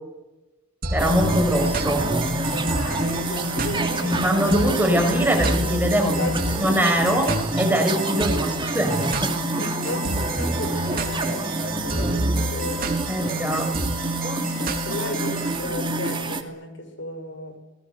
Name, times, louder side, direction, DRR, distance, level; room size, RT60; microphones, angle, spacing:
sound 1, 0.8-15.6, right 3 dB, 50° right, 3.5 m, -32 dB
voice 1, 0.9-2.0 4.0-7.3 7.6-9.7 13.1-13.7, equal, 10° right, 4 dB, 5.9 m, -22 dB
sound 2, 1.0-16.4, right 1 dB, 25° right, 2.7 m, -26 dB
voice 2, 2.2-4.4 6.2-6.4 9.6-12.8 14.6-17.6, left 1 dB, 70° left, 7 dB, 6.7 m, -34 dB
28.5 x 20.0 x 8.2 m, 1.0 s
head